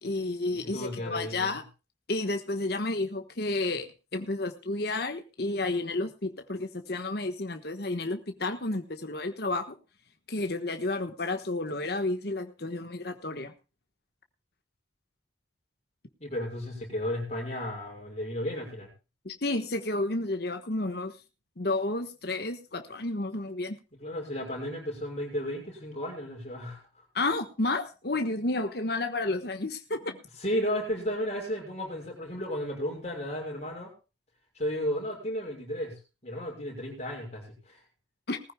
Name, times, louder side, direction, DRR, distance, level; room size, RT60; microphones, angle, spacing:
voice 1, 0.0-1.6 2.1-9.8 10.3-13.5 19.2-21.1 21.6-23.8 27.1-30.2 38.3-38.4, left 2 dB, 55° left, 6 dB, 1.3 m, -31 dB
voice 2, 0.7-1.6 16.2-18.9 24.0-26.8 30.4-33.9 34.6-37.8, equal, 35° left, 0 dB, 6.3 m, -33 dB
20.0 x 15.0 x 2.3 m, 0.31 s
head